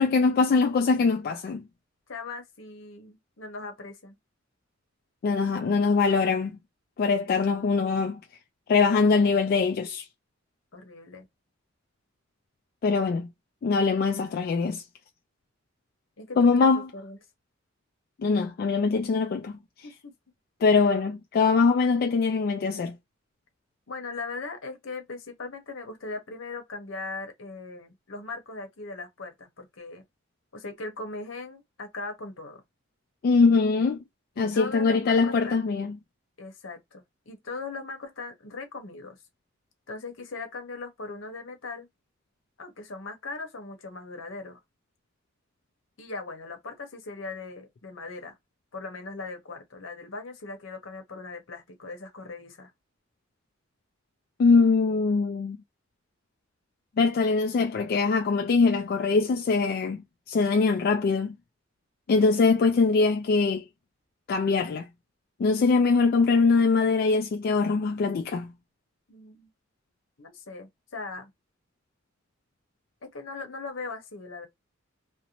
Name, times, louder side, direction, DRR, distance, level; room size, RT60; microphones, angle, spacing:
voice 1, 0.0-1.6 5.2-6.5 7.0-8.2 8.7-10.0 12.8-13.3 13.6-14.8 16.4-16.9 18.2-19.5 20.6-22.9 33.2-34.0 34.4-36.0 54.4-55.6 57.0-60.0 60.3-61.3 62.1-63.6 64.3-64.8 65.4-68.5, left 4 dB, 50° left, 0.3 m, -22 dB
voice 2, 2.1-4.1 10.7-11.3 16.2-17.2 19.8-20.1 23.9-30.0 30.5-32.6 34.4-35.6 36.4-39.2 39.9-41.9 42.6-44.6 46.0-48.3 48.7-52.7 69.1-69.5 70.2-71.3 73.1-74.5, left 3 dB, 75° left, 0.9 m, -39 dB
2.6 x 2.0 x 2.9 m
head